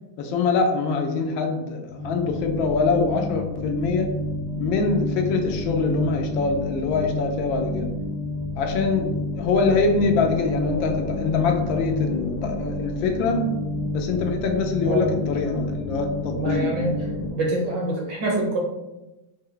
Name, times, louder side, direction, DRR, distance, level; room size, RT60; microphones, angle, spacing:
voice 1, 0.2-4.2 4.6-8.0 8.6-13.6 13.9-16.8, left 4 dB, 80° left, 4 dB, 1.3 m, -24 dB
sound 1, 1.9-17.3, left 2 dB, 60° left, 1.4 m, -30 dB
voice 2, 16.3-17.0 17.3-18.6, right 2 dB, 70° right, -1 dB, 1.6 m, -25 dB
4.3 x 2.1 x 3.7 m, 0.99 s
omnidirectional pair, 2.1 m